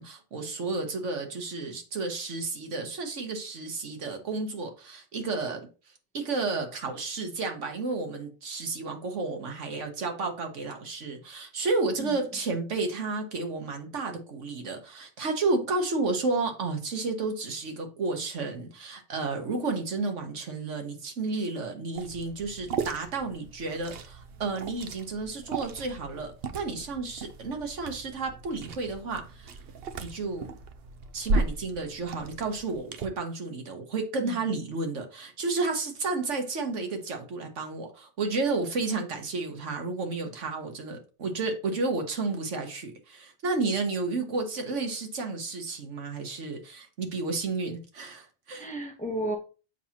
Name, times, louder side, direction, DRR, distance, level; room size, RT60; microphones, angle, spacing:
voice 1, 0.0-29.5 30.0-30.5 31.1-48.7, right 3 dB, 90° right, 1.6 m, -32 dB
voice 2, 12.0-12.4 34.2-34.6 48.5-49.4, right 1 dB, 5° left, 0.9 m, -34 dB
Liquid, 22.0-33.1, right 3 dB, 60° right, 0.9 m, -36 dB
7.1 x 5.7 x 2.9 m
omnidirectional pair, 1.2 m